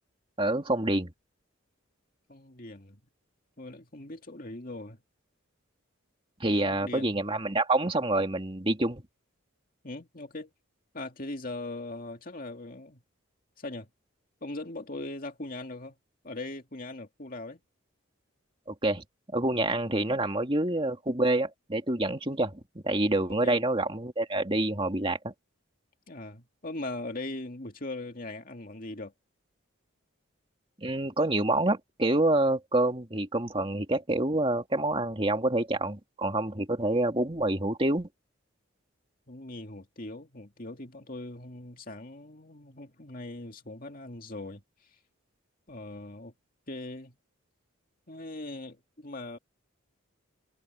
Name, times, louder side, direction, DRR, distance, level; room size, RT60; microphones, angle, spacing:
voice 1, 0.4-1.1 6.4-9.0 18.7-19.0 19.3-25.3 30.8-38.1, right 2 dB, 25° right, 2.5 m, -27 dB
voice 2, 2.3-3.0 3.6-5.0 6.6-7.2 9.8-10.5 10.9-13.0 13.6-13.9 14.4-16.0 16.2-17.6 23.3-23.6 26.1-29.1 39.3-44.6 45.7-46.3 46.7-47.2 48.1-49.4, left 2 dB, 40° left, 2.4 m, -40 dB
head